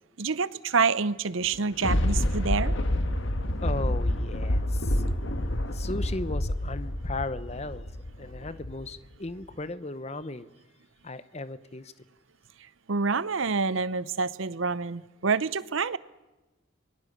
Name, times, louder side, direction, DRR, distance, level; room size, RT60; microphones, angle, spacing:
voice 1, 0.2-2.8 12.6-16.0, right 4 dB, 70° right, 17 dB, 0.7 m, -27 dB
Thunder, 1.4-8.9 9.4-9.5, left 1 dB, 65° left, 1.6 m, -28 dB
voice 2, 3.6-5.0 5.7-7.9 8.2-10.5 11.0-11.9, left 2 dB, 30° left, 14 dB, 0.9 m, -36 dB
28.0 x 22.0 x 6.8 m, 1.1 s
head